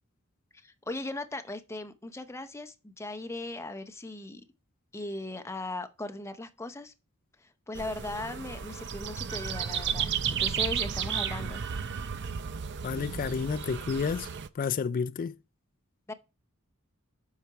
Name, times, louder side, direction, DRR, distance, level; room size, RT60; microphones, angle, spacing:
voice 1, 0.6-4.4 4.9-6.9 7.4-11.6 16.1-16.2, left 2 dB, 15° left, 0.7 m, -38 dB
sound 1, 7.8-14.5, right 7 dB, 55° right, 0.5 m, -33 dB
voice 2, 12.8-14.3 14.6-15.3, left 6 dB, 40° left, 0.3 m, -30 dB
7.9 x 5.7 x 4.7 m
head